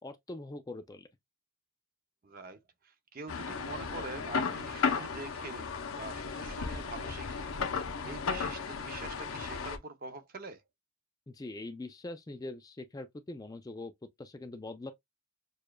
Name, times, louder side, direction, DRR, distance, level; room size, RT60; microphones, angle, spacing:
voice 1, 0.0-1.1 11.3-13.9 14.2-14.9, left 2 dB, 15° left, 0.3 m, -42 dB
voice 2, 2.2-2.6 2.8-7.4 7.7-10.6, right 3 dB, 40° right, 0.6 m, -45 dB
sound 1, 3.3-9.8, left 5 dB, 75° left, 0.7 m, -35 dB
6.5 x 2.3 x 2.3 m
head